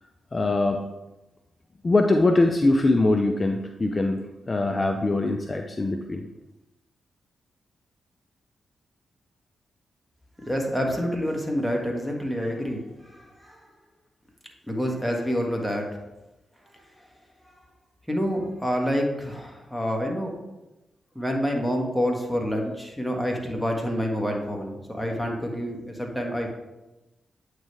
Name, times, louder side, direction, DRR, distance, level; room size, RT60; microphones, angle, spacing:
voice 1, 0.3-0.8 1.8-4.2 4.5-6.2, left 2 dB, 35° left, 5 dB, 0.5 m, -22 dB
voice 2, 10.4-13.7 14.7-16.0 16.7-16.9 17.4-17.5 18.1-20.3 21.1-26.5, equal, ahead, 1 dB, 1.5 m, -28 dB
8.6 x 3.3 x 3.3 m, 0.99 s
supercardioid pair, 40°, 0 cm